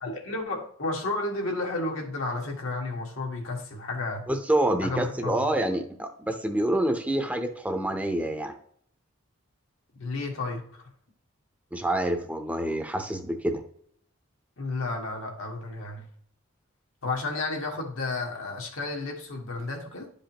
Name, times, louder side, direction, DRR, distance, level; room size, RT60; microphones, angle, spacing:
voice 1, 0.0-4.3 4.8-5.5 10.0-10.8 14.6-16.1 17.0-20.1, left 2 dB, 80° left, 0 dB, 1.8 m, -32 dB
voice 2, 4.3-8.5 11.7-13.6, right 1 dB, 5° right, 5 dB, 0.7 m, -27 dB
11.0 x 5.1 x 2.9 m, 0.64 s
head